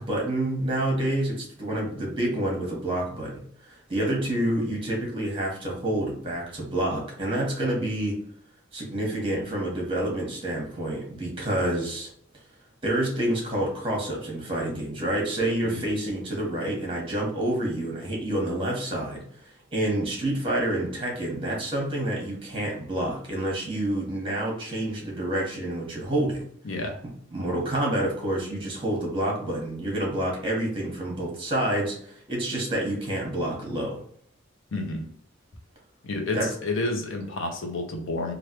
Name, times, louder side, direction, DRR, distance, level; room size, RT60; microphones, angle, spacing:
voice 1, 0.0-8.2 8.7-12.1 12.8-26.4 27.3-34.0 36.3-36.5, right 1 dB, 25° right, -1 dB, 1.3 m, -28 dB
voice 2, 26.6-27.0 34.7-35.1 36.0-38.3, left 2 dB, 65° left, 4 dB, 0.7 m, -30 dB
3.3 x 2.5 x 2.8 m, 0.62 s
head